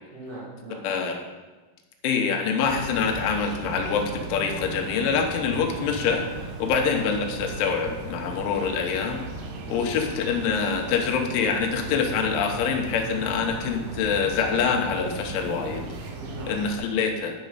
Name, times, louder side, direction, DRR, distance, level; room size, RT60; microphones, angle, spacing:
voice 1, 0.1-0.8 6.7-6.9 9.7-10.3 16.1-16.6, right 1 dB, 20° right, -7 dB, 2.0 m, -41 dB
voice 2, 0.8-1.1 2.0-6.3 6.6-9.2 9.7-15.9 16.5-17.3, left 6 dB, 90° left, 3 dB, 3.4 m, -25 dB
sound 1, 2.6-16.8, right 3 dB, 85° right, 3.5 m, -37 dB
9.8 x 5.1 x 5.6 m, 1.2 s
omnidirectional pair, 5.5 m